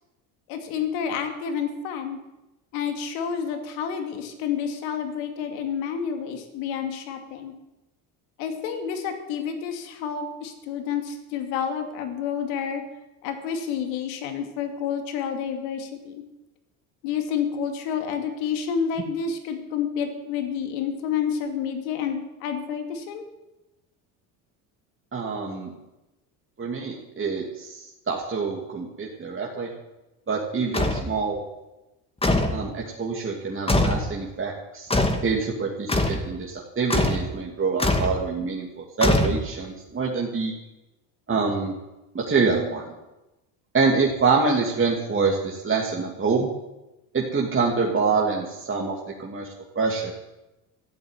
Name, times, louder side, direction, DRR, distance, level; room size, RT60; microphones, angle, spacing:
voice 1, 0.5-2.2 2.7-7.5 8.4-12.8 13.2-16.2 17.0-23.2, left 7 dB, 75° left, 6 dB, 2.5 m, -29 dB
voice 2, 25.1-25.7 26.6-29.7 30.3-31.5 32.5-34.9 35.2-40.5 41.3-41.8 42.1-42.8 43.7-46.5 47.1-48.9 49.2-49.5 49.7-50.1, right 4 dB, 30° right, -2 dB, 2.8 m, -25 dB
sound 1, 30.7-31.1 32.2-32.6 33.7-34.1 34.9-35.3 35.9-36.2 36.9-37.3 37.8-38.2 39.0-39.7, left 1 dB, 15° left, 2.2 m, -22 dB
14.0 x 7.9 x 9.3 m, 0.99 s
hypercardioid pair, 75°, 43 cm